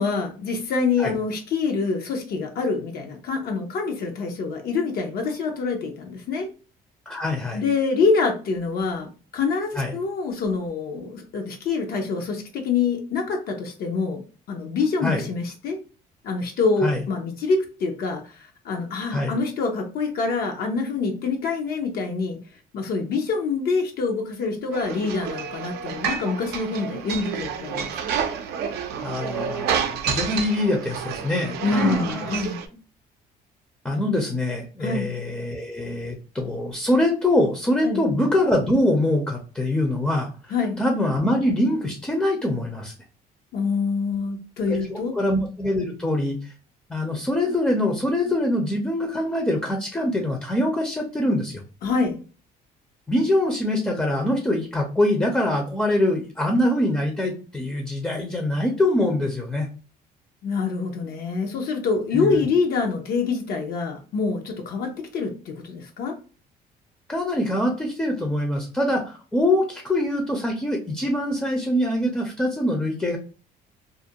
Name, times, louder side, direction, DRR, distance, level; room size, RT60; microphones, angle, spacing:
voice 1, 0.0-6.5 7.5-15.8 16.2-22.4 22.7-27.9 31.6-32.6 34.8-35.1 37.8-38.0 40.5-40.8 43.5-45.1 51.8-52.2 60.4-66.1, left 4 dB, 65° left, 3 dB, 0.6 m, -26 dB
voice 2, 7.1-7.6 9.8-9.9 15.0-15.2 16.8-17.0 19.1-19.3 29.0-32.3 33.8-42.9 44.7-46.5 46.9-51.6 53.1-59.7 62.1-62.3 67.1-73.2, left 1 dB, 10° left, 1 dB, 0.5 m, -24 dB
sound 1, 24.7-32.7, right 7 dB, 70° right, 0.4 m, -29 dB
2.4 x 2.1 x 2.7 m, 0.37 s
cardioid pair, 110°, 17 cm